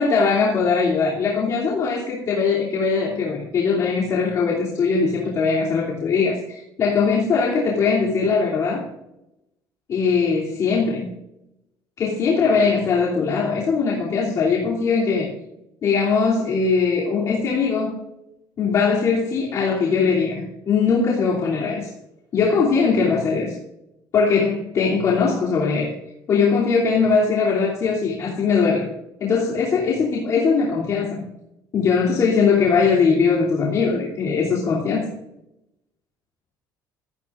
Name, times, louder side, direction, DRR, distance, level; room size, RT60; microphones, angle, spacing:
voice 1, 0.0-8.8 9.9-11.1 12.0-15.3 15.8-18.0 18.6-21.9 22.3-23.5 24.1-25.9 26.3-28.9 29.2-31.2 31.7-35.1, left 5 dB, 40° left, -6 dB, 2.9 m, -20 dB
18.0 x 13.5 x 2.5 m, 0.87 s
cardioid pair, 150°, 8 cm